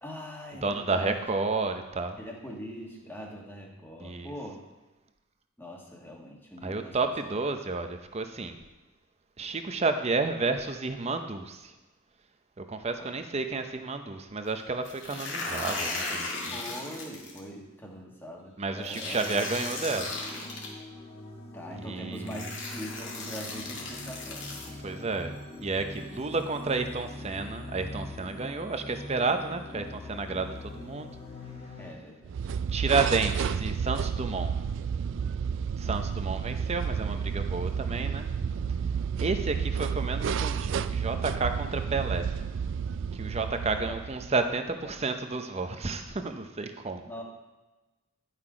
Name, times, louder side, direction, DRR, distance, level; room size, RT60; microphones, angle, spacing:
voice 1, 0.0-1.2 2.2-4.6 5.6-7.1 13.0-13.1 16.5-19.2 21.5-25.2 31.8-32.5 41.9-42.0 43.8-44.0 44.8-44.9 47.1-47.2, equal, 10° left, 0 dB, 1.4 m, -42 dB
voice 2, 0.6-2.2 4.0-4.3 6.6-8.6 9.4-11.7 12.6-16.6 18.6-20.1 21.7-22.5 24.8-31.1 32.7-34.6 35.3-35.4 35.8-38.3 39.2-42.3 43.1-47.0, right 3 dB, 30° right, 7 dB, 0.7 m, -31 dB
sound 1, 14.8-17.4 18.9-20.7 21.7-21.8 22.2-24.7, left 3 dB, 60° left, 1.9 m, -36 dB
sound 2, 19.0-31.9, left 1 dB, 30° left, 1.4 m, -43 dB
sound 3, 32.2-44.4, right 6 dB, 60° right, 0.3 m, -31 dB
10.5 x 5.8 x 4.9 m, 1.1 s
head